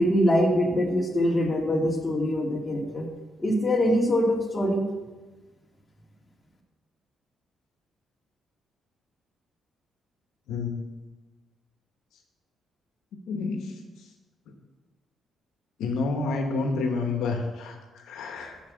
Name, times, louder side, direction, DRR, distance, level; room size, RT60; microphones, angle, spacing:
voice 1, 0.0-3.1 3.4-4.8, equal, 25° left, -1 dB, 2.3 m, -23 dB
voice 2, 13.3-13.7 15.8-18.6, left 3 dB, 85° left, 3 dB, 1.2 m, -29 dB
7.5 x 7.3 x 7.2 m, 1.2 s
cardioid pair, 90°, 0 cm